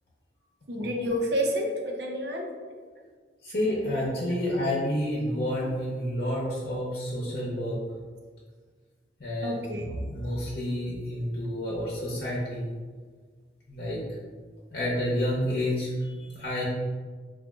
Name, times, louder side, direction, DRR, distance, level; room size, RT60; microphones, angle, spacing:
voice 1, 0.7-2.5 9.4-9.9, equal, 65° right, 1 dB, 0.5 m, -29 dB
voice 2, 3.4-7.8 9.2-12.7 13.7-14.0 14.7-16.6, left 1 dB, 55° left, -6 dB, 0.8 m, -29 dB
4.8 x 2.4 x 2.4 m, 1.6 s
head